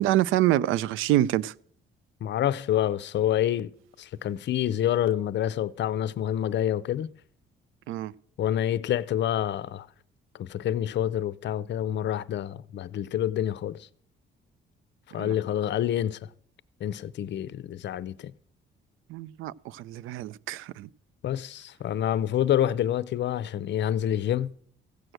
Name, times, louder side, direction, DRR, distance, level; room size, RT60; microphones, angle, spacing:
voice 1, 0.0-1.5 7.9-8.1 15.2-15.3 19.1-20.9, right 14 dB, 90° right, 0.4 m, -26 dB
voice 2, 2.2-3.7 4.0-7.1 8.4-9.9 10.3-13.9 15.1-16.3 16.8-18.3 21.2-24.5, left 11 dB, 65° left, 0.6 m, -27 dB
15.5 x 6.2 x 7.8 m
cardioid pair, 90°, 20 cm